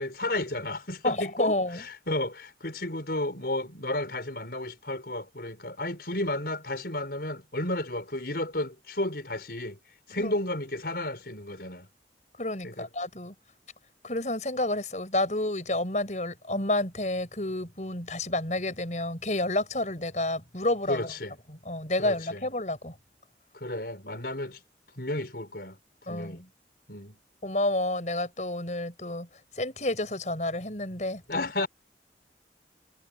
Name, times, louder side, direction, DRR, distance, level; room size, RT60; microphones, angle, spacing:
voice 1, 0.0-9.8 10.1-11.9 12.6-12.9 20.9-21.4 22.0-22.5 23.5-24.6 25.0-25.8 26.1-26.4 26.9-27.2 31.3-31.7, left 1 dB, 60° left, 5.6 m, -32 dB
voice 2, 1.0-1.8 10.2-10.3 12.4-13.3 14.0-21.1 21.6-22.9 26.1-26.4 27.4-29.3 29.6-31.4, left 1 dB, 40° left, 6.2 m, -30 dB
head